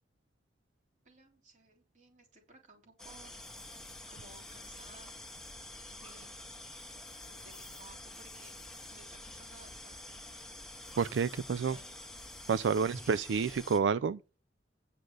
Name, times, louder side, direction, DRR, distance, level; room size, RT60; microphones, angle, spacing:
voice 1, 1.1-3.4 3.7-3.8 4.1-5.2 5.9-6.4 7.2-8.5 8.9-10.3 11.6-11.9 12.2-12.4 12.7-13.1, right 2 dB, 45° right, 3.5 m, -57 dB
sound 1, 3.0-13.8, left 1 dB, 5° left, 1.4 m, -48 dB
voice 2, 11.0-11.8 12.5-14.2, right 6 dB, 80° right, 0.4 m, -29 dB
9.8 x 5.2 x 6.3 m
head